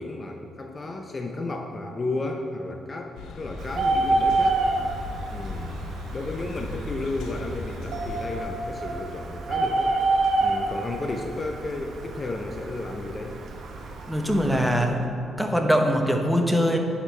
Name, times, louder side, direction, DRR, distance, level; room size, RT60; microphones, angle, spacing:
voice 1, 0.0-4.6 5.3-5.8 6.1-10.0 10.4-13.4, left 2 dB, 35° left, 3 dB, 0.5 m, -33 dB
sound 1, 3.1-8.5, left 3 dB, 90° left, 0.6 m, -37 dB
Bird, 3.6-14.8, right 3 dB, 70° right, 0.8 m, -28 dB
sound 2, 7.9-11.6 12.0-12.1, right 1 dB, 85° right, 1.5 m, -39 dB
voice 2, 14.1-15.0 15.4-16.8, equal, 5° right, 3 dB, 0.8 m, -22 dB
9.6 x 5.0 x 3.2 m, 2.6 s
cardioid pair, 75°, 0 cm